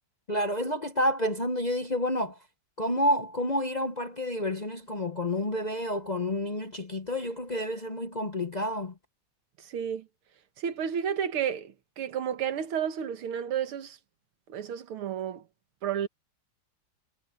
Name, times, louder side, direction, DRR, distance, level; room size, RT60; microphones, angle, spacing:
voice 1, 0.3-2.4 2.8-8.9, left 1 dB, 55° left, 0.4 m, -29 dB
voice 2, 9.6-10.1 10.6-14.0 14.5-15.4 15.8-16.1, right 8 dB, 80° right, 2.3 m, -31 dB
omnidirectional pair, 2.3 m